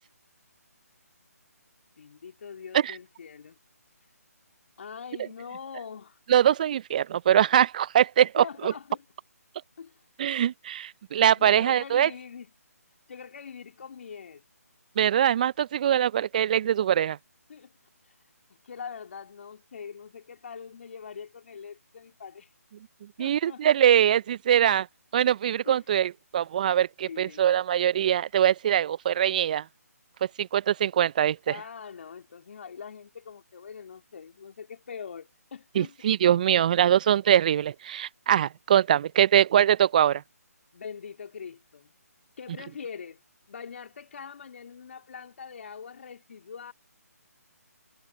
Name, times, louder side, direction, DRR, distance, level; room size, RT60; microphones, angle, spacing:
voice 1, 2.0-3.6 4.8-6.2 8.4-9.0 9.8-10.0 11.3-12.5 13.1-14.4 17.5-17.7 18.0-18.2 18.6-22.5 23.2-23.7 25.6-25.8 27.0-27.4 31.5-35.9 40.7-41.9 42.4-43.2 43.5-46.7, left 6 dB, 50° left, 3.3 m, -42 dB
voice 2, 6.3-8.7 10.2-12.1 15.0-17.2 23.2-24.9 25.1-29.6 30.4-31.5 35.8-40.2, right 10 dB, 30° right, 0.4 m, -22 dB
figure-of-eight pair, 150°, 9 cm